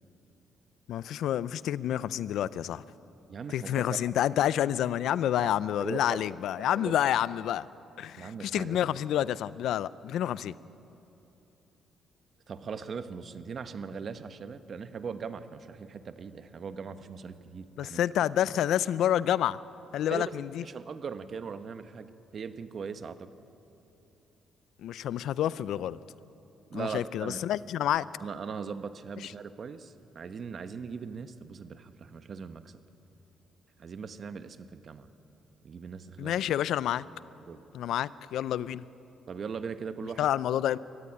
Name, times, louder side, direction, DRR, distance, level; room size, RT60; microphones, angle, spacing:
voice 1, 0.9-2.8 3.5-7.7 8.0-10.5 17.8-19.6 19.9-20.6 24.8-26.0 26.7-28.1 36.2-37.0 37.7-38.8 40.2-40.8, left 11 dB, 80° left, 18 dB, 0.5 m, -28 dB
voice 2, 3.3-4.1 5.4-5.5 5.8-6.2 6.6-7.0 8.2-8.8 12.5-18.0 20.1-20.3 20.6-22.1 22.3-23.3 26.7-27.4 28.2-32.8 33.8-35.1 35.6-36.3 37.5-37.6 39.3-40.3, right 6 dB, 50° right, 10 dB, 1.1 m, -39 dB
22.5 x 14.5 x 9.8 m, 2.9 s
cardioid pair, 90°, 0 cm